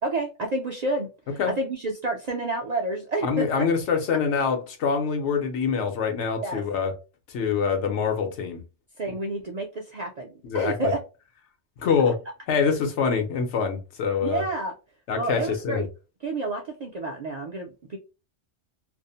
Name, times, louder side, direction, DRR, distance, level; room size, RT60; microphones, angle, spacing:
voice 1, 0.0-3.7 6.4-6.6 9.0-11.0 14.2-14.7 15.1-15.9 16.2-18.0, right 2 dB, 60° right, 0.4 m, -29 dB
voice 2, 3.2-6.9 7.3-8.6 10.4-10.9 11.8-12.2 12.5-14.4 15.1-15.9, left 6 dB, 85° left, 1.0 m, -25 dB
2.5 x 2.0 x 2.7 m
omnidirectional pair, 1.2 m